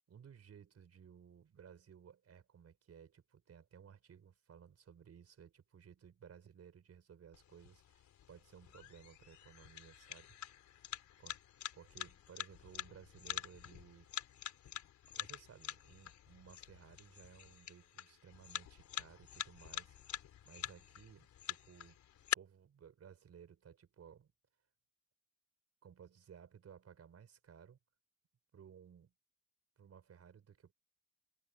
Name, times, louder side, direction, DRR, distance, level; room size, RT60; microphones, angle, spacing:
voice 1, 0.1-10.4 11.2-11.4 11.7-14.1 15.1-22.0 22.3-24.3 25.8-27.8 28.5-29.1 29.8-30.7, right 8 dB, 55° right, 5.6 m, -59 dB
sound 1, 7.3-22.3, left 10 dB, 70° left, 4.1 m, -46 dB
cardioid pair, 90°, 30 cm